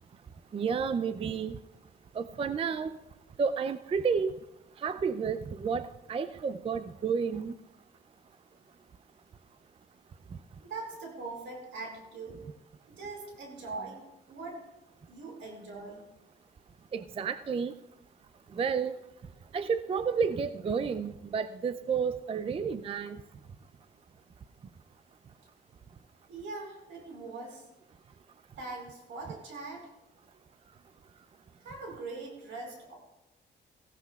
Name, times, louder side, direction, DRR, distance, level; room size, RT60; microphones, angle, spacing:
voice 1, 0.5-1.6 2.1-2.9 3.4-4.3 4.8-7.6 16.9-17.7 18.5-18.9 19.5-23.2, right 6 dB, 30° right, 12 dB, 0.4 m, -31 dB
voice 2, 10.6-12.4 12.9-14.0 14.3-14.6 15.1-16.0 26.3-27.7 28.6-29.9 31.6-32.9, right 3 dB, 80° right, 1 dB, 4.8 m, -41 dB
17.5 x 15.5 x 2.3 m, 0.95 s
cardioid pair, 115°, 20 cm